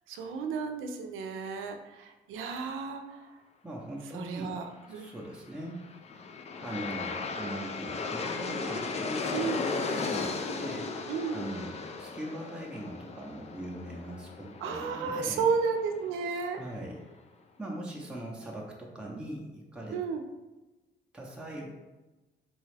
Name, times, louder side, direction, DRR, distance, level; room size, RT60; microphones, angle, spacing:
voice 1, 0.1-3.3 4.1-5.1 9.3-9.6 11.1-11.4 14.6-16.6 19.9-20.2, right 5 dB, 90° right, 5 dB, 0.5 m, -32 dB
voice 2, 3.6-4.6 4.9-5.8 6.6-10.9 11.3-15.4 16.5-17.0 17.6-20.0 21.1-21.7, right 1 dB, 5° right, -3 dB, 0.6 m, -40 dB
Aircraft, 5.6-16.7, left 4 dB, 35° left, 0.4 m, -36 dB
4.0 x 2.3 x 3.2 m, 1.1 s
cardioid pair, 90°, 20 cm